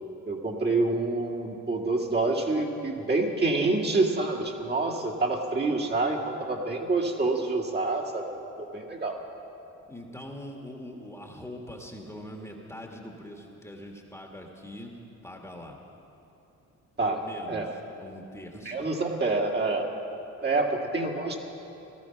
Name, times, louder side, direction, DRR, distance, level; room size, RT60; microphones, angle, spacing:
voice 1, 0.3-8.2 8.7-9.1 17.0-17.2 17.5-17.7 18.6-19.9 20.4-21.4, right 3 dB, 35° right, 0 dB, 2.0 m, -27 dB
voice 2, 9.9-15.0 15.2-15.8 17.0-18.8 20.5-20.6, left 1 dB, 10° left, 0 dB, 1.8 m, -43 dB
17.5 x 13.0 x 5.9 m, 2.8 s
cardioid pair, 90°, 30 cm